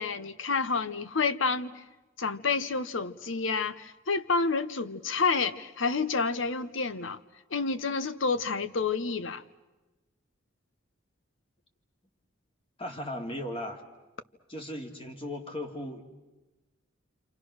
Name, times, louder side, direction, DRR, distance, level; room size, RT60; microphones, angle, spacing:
voice 1, 0.0-1.8 2.2-7.2 7.5-9.4, left 4 dB, 70° left, 1.0 m, -29 dB
voice 2, 12.8-13.8 14.5-16.0, left 1 dB, 30° left, 2.7 m, -37 dB
28.5 x 27.0 x 6.4 m
head